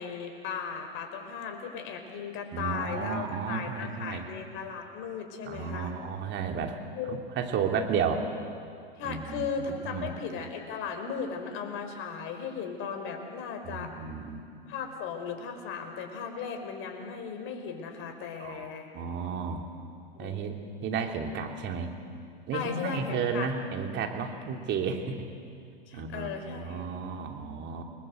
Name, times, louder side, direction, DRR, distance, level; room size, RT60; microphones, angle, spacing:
voice 1, 0.0-5.9 6.9-7.2 9.0-13.9 14.7-18.9 20.2-20.4 22.5-23.5 25.9-26.9, left 6 dB, 45° left, 5 dB, 4.7 m, -36 dB
voice 2, 2.5-4.2 5.5-6.8 7.1-8.2 9.0-9.5 9.8-10.1 13.6-14.4 18.4-19.6 20.2-21.9 22.5-25.2 25.9-27.8, right 6 dB, 35° right, 3 dB, 3.2 m, -33 dB
29.0 x 20.5 x 8.0 m, 2.3 s
hypercardioid pair, 100°, 30 cm